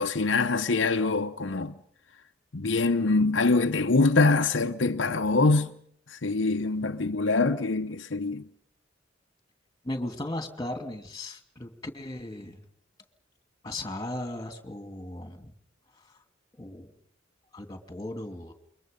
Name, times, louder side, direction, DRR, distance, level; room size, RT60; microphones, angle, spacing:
voice 1, 0.0-1.7 2.5-5.7 6.1-8.5, left 3 dB, 70° left, 0.9 m, -24 dB
voice 2, 9.8-12.6 13.6-15.5 16.6-16.9 17.5-18.5, left 1 dB, 20° left, 2.7 m, -36 dB
28.5 x 23.5 x 5.4 m
head